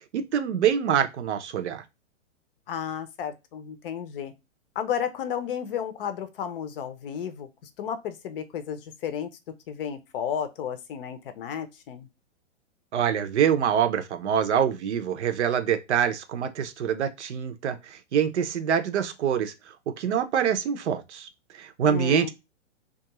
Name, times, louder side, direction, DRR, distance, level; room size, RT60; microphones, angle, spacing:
voice 1, 0.1-1.8 12.9-19.5 20.0-21.3 21.5-22.3, right 8 dB, 70° right, 0.6 m, -25 dB
voice 2, 2.7-4.3 4.8-7.5 7.8-9.3 9.7-12.1 21.9-22.3, left 8 dB, 50° left, 0.6 m, -32 dB
2.3 x 2.3 x 2.9 m
hypercardioid pair, 115°, 36 cm